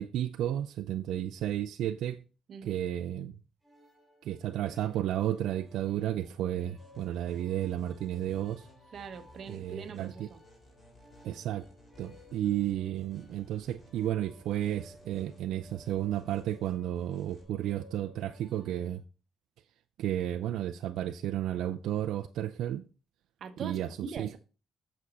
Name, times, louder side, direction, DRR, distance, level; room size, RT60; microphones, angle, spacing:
voice 1, 0.0-2.2 2.6-3.3 4.2-8.7 9.5-10.3 11.2-11.7 12.0-19.0 20.0-22.8 23.6-23.9 24.2-24.4, right 12 dB, 70° right, 0.4 m, -32 dB
voice 2, 2.5-2.8 8.9-10.4 23.4-24.4, right 5 dB, 40° right, 0.8 m, -42 dB
sound 1, 3.6-19.0, equal, ahead, 3.8 m, -59 dB
sound 2, 6.8-17.4, left 1 dB, 25° left, 3.3 m, -58 dB
8.4 x 6.3 x 4.0 m
cardioid pair, 175°, 0 cm